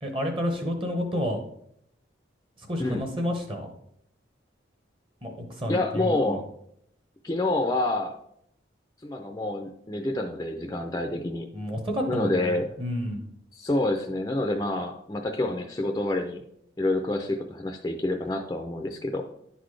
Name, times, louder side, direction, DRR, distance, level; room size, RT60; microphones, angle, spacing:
voice 1, 0.0-1.4 2.6-3.7 5.2-6.4 11.5-13.2, equal, 25° right, 3 dB, 0.9 m, -30 dB
voice 2, 5.7-6.4 7.2-8.2 9.0-11.5 12.1-12.7 13.5-16.4 16.8-19.2, left 2 dB, 20° left, 3 dB, 0.4 m, -28 dB
10.0 x 4.0 x 3.2 m, 0.72 s
head